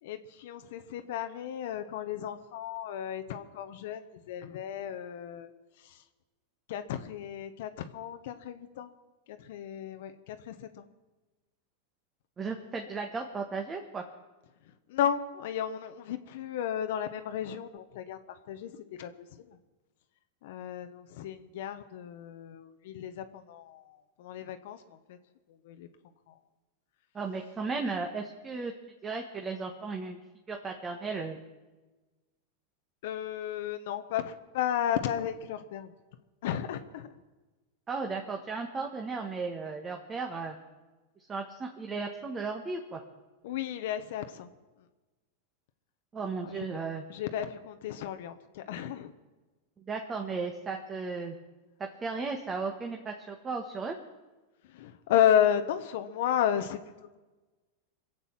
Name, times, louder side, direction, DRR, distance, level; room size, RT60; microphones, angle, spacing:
voice 1, 0.0-5.5 5.8-6.0 6.7-8.9 9.3-10.8 14.9-19.6 20.4-25.2 25.5-25.9 26.3-26.4 33.0-35.9 36.4-37.1 43.4-44.5 46.4-46.8 47.1-49.1 54.6-57.2, left 10 dB, 70° left, 8 dB, 1.0 m, -33 dB
voice 2, 12.4-14.0 27.1-28.7 29.0-30.2 30.5-31.4 37.9-40.6 41.3-43.0 46.1-47.0 49.9-51.4 51.8-54.0, right 4 dB, 20° right, 3 dB, 1.5 m, -35 dB
22.5 x 8.0 x 7.4 m, 1.2 s
hypercardioid pair, 115°, 0 cm